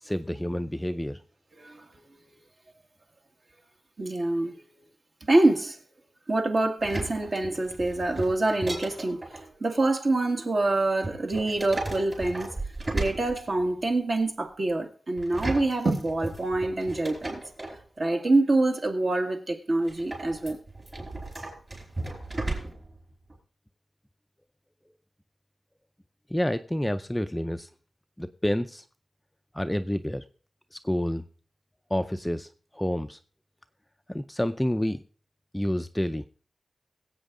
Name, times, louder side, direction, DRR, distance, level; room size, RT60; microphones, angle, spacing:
voice 1, 0.0-1.2 26.3-27.7 28.2-28.8 29.5-30.2 30.7-31.3 31.9-32.5 32.7-33.2 34.1-35.0 35.5-36.3, equal, 5° left, 0.5 m, -28 dB
voice 2, 4.0-4.5 5.3-5.8 6.3-12.5 12.9-17.4 18.0-20.6, right 2 dB, 45° right, 1.8 m, -26 dB
sound 1, 6.8-9.5 11.0-13.8 15.2-17.8 19.9-23.0 23.3-23.4, right 2 dB, 25° right, 5.1 m, -35 dB
22.0 x 8.2 x 3.7 m
wide cardioid pair, 135°, 0 cm